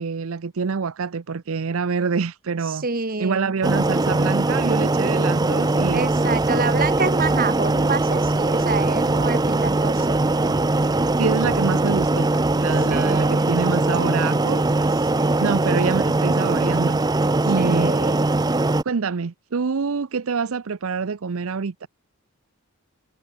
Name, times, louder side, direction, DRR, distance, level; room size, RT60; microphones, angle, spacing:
voice 1, 0.0-2.9 3.2-6.1 11.2-12.3 12.6-14.9 15.4-18.0 18.9-21.9, right 5 dB, 65° right, 0.6 m, -26 dB
voice 2, 2.7-3.5 5.9-10.2 12.9-13.5 15.1-15.5 17.6-18.4, right 4 dB, 40° right, 1.5 m, -27 dB
sound 1, 3.6-18.8, right 2 dB, 15° right, 0.5 m, -21 dB
sound 2, 5.8-13.3, left 2 dB, 80° left, 1.8 m, -41 dB
head